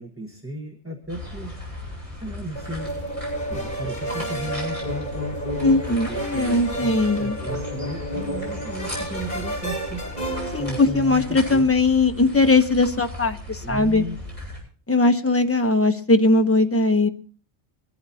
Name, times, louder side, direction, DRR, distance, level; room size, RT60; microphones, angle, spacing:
voice 1, 0.0-1.6 2.2-2.9 3.5-5.1 5.9-10.1 10.6-11.7 13.6-14.2, right 1 dB, 10° right, 1 dB, 1.4 m, -34 dB
sound 1, 1.0-3.0 4.8-6.8 8.6-10.6 12.5-14.4, equal, 60° left, 2.7 m, -45 dB
sound 2, 1.1-14.6, left 1 dB, 30° right, 8.0 m, -37 dB
sound 3, 2.5-10.8, right 1 dB, 35° left, 4.8 m, -31 dB
voice 2, 5.6-7.4 10.5-14.0 14.9-17.1, left 2 dB, 15° left, 5 dB, 1.0 m, -19 dB
24.5 x 12.5 x 2.8 m, 0.41 s
omnidirectional pair, 1.2 m